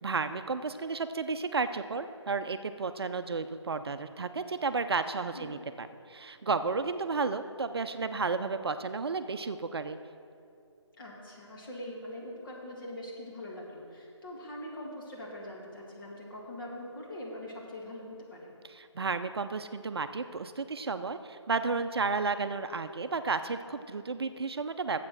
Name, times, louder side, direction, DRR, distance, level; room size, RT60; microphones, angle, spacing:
voice 1, 0.0-10.0 18.7-25.0, right 4 dB, 55° right, 10 dB, 0.5 m, -32 dB
voice 2, 11.0-18.5, left 1 dB, 45° left, -3 dB, 2.3 m, -43 dB
8.6 x 7.5 x 6.1 m, 2.4 s
figure-of-eight pair, 155°, 15 cm